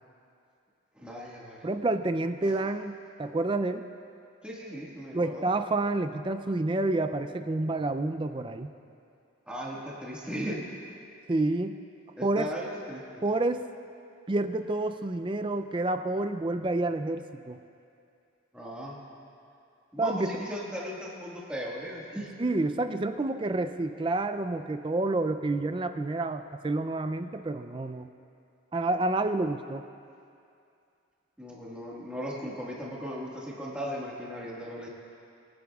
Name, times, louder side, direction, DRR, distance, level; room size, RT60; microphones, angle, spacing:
voice 1, 0.9-1.7 4.4-5.5 9.5-10.6 12.2-13.2 18.5-19.0 19.9-22.3 31.4-34.9, equal, 5° right, -5 dB, 1.6 m, -37 dB
voice 2, 1.6-3.9 5.1-8.7 11.3-11.7 12.2-12.5 13.2-13.7 14.3-17.6 20.0-20.4 22.4-28.1 28.7-29.9, right 2 dB, 25° right, 8 dB, 0.4 m, -29 dB
23.0 x 10.5 x 2.4 m, 2.5 s
head